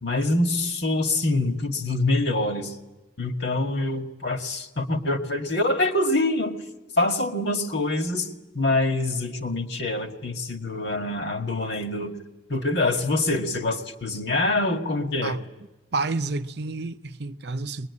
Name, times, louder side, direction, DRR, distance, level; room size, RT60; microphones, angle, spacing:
voice 1, 0.0-2.8 3.2-6.5 7.0-8.3 8.5-12.2 12.5-15.4, left 2 dB, 60° left, 2.0 m, -25 dB
voice 2, 15.9-17.9, right 3 dB, 60° right, 0.8 m, -29 dB
23.0 x 21.0 x 9.7 m
head